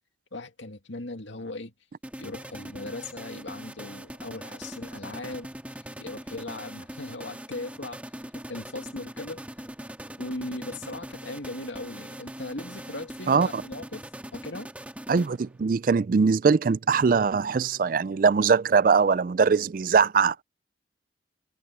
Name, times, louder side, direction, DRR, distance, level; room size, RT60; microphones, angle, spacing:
voice 1, 0.3-1.7 2.2-8.0 8.5-9.4 10.2-14.0 14.3-14.7, left 2 dB, 75° left, 2.3 m, -38 dB
sound 1, 2.0-15.7, right 1 dB, 5° right, 1.8 m, -41 dB
voice 2, 13.3-13.6 15.1-20.4, right 5 dB, 45° right, 0.3 m, -22 dB
head